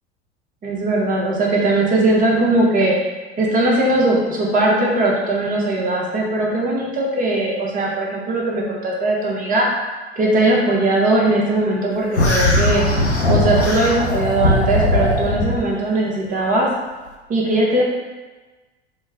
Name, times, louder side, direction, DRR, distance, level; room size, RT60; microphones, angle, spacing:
voice 1, 0.6-3.1 3.4-9.7 10.2-12.8 13.3-16.7 17.3-17.8, right 2 dB, 25° right, -3 dB, 1.0 m, -19 dB
sound 1, 12.1-15.6, left 1 dB, 90° left, 0.6 m, -18 dB
4.2 x 2.1 x 3.5 m, 1.2 s
figure-of-eight pair, 80°, 32 cm